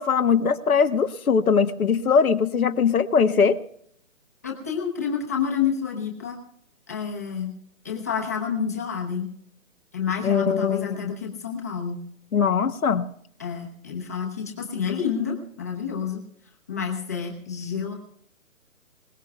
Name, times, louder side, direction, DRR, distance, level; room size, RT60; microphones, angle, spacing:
voice 1, 0.0-3.6 10.2-11.0 12.3-13.1, left 6 dB, 90° left, 7 dB, 1.3 m, -21 dB
voice 2, 4.4-6.4 6.9-7.5 7.8-9.3 9.9-12.0 13.4-16.2 16.7-17.9, left 7 dB, 10° left, -1 dB, 0.9 m, -29 dB
25.5 x 17.5 x 2.3 m, 0.69 s
hypercardioid pair, 175°, 42 cm